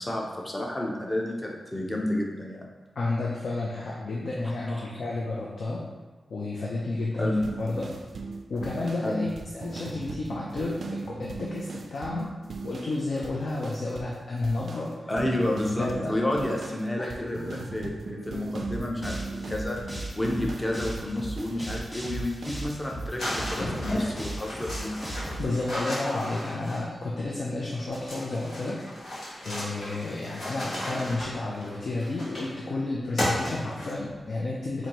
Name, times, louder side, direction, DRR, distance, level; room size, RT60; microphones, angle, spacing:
voice 1, 0.0-2.7 4.7-4.9 7.2-7.4 9.0-9.2 15.1-19.8 20.2-25.0, left 1 dB, 15° left, -1 dB, 0.6 m, -30 dB
voice 2, 3.0-5.8 6.3-7.3 7.6-7.9 8.5-12.3 12.6-15.1 15.7-16.2 17.0-17.1 25.4-28.8 29.4-34.9, left 2 dB, 65° left, -4 dB, 0.5 m, -31 dB
sound 1, 7.4-13.0 13.2-14.2 14.4-21.9 22.2-22.6, right 3 dB, 65° right, 0.3 m, -39 dB
sound 2, 18.6-25.4, right 1 dB, ahead, 1.1 m, -36 dB
sound 3, 23.2-27.1 27.9-32.6 33.2-34.2, left 1 dB, 80° left, 1.3 m, -34 dB
4.3 x 2.6 x 2.9 m, 1.3 s
wide cardioid pair, 115°, 0 cm